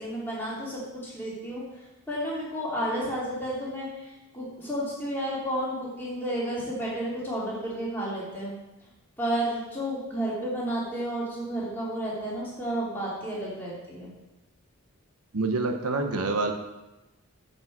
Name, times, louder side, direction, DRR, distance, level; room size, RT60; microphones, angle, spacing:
voice 1, 0.0-1.6 2.1-8.5 9.2-14.1, right 1 dB, 10° left, -7 dB, 3.1 m, -31 dB
voice 2, 15.3-16.5, right 3 dB, 90° right, 5 dB, 0.9 m, -26 dB
7.8 x 5.4 x 7.3 m, 1.0 s
head